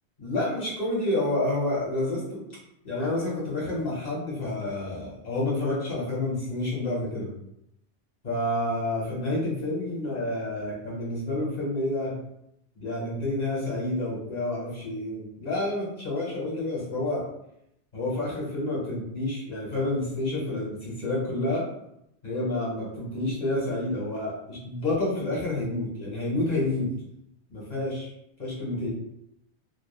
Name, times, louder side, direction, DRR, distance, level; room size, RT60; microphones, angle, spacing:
voice 1, 0.2-2.4 2.8-7.3 8.2-12.1 12.8-17.2 17.9-21.6 22.2-26.9 27.5-28.1 28.4-28.9, left 2 dB, 40° left, -5 dB, 1.0 m, -29 dB
2.2 x 2.0 x 2.9 m, 0.78 s
omnidirectional pair, 1.1 m